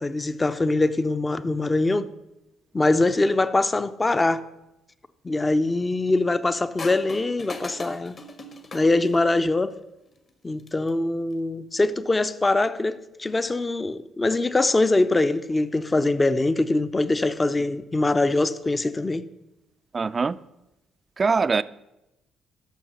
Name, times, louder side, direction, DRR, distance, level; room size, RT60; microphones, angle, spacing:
voice 1, 0.0-2.1 2.7-4.4 5.2-8.2 8.7-9.8 10.4-19.3, left 2 dB, 25° left, 0.6 m, -23 dB
sound 1, 6.8-9.5 10.5-10.9, left 2 dB, 40° left, 1.4 m, -39 dB
voice 2, 19.9-20.4 21.2-21.6, right 4 dB, 35° right, 0.4 m, -22 dB
12.5 x 6.3 x 6.4 m
figure-of-eight pair, 45°, 0 cm